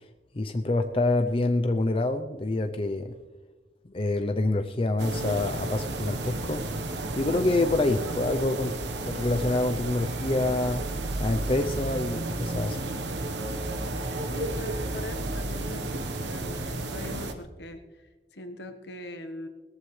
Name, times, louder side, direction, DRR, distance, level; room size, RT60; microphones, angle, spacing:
voice 1, 0.3-3.1 3.9-6.6 7.2-10.9 11.2-12.8, left 2 dB, 30° left, 6 dB, 0.5 m, -27 dB
sound 1, 5.0-17.3, right 2 dB, 90° right, 1.1 m, -32 dB
voice 2, 14.3-19.5, left 2 dB, 75° left, 6 dB, 1.2 m, -42 dB
18.5 x 14.0 x 3.2 m, 1.2 s
head